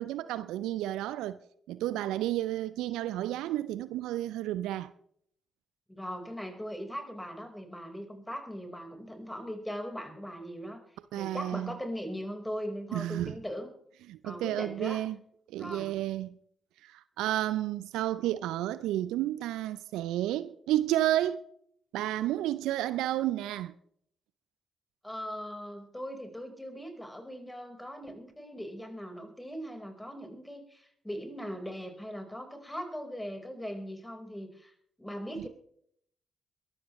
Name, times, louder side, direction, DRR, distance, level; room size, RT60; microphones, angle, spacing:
voice 1, 0.0-1.4 1.7-4.9 11.1-11.8 12.9-13.3 14.1-15.2 15.5-16.4 16.8-21.4 21.9-23.7, right 13 dB, 70° right, 0.5 m, -31 dB
voice 2, 5.9-10.8 11.2-13.7 14.2-15.0 15.6-15.9 25.0-34.7 35.0-35.5, equal, 10° left, 4.4 m, -40 dB
22.5 x 13.0 x 3.1 m
hypercardioid pair, 40°, 0 cm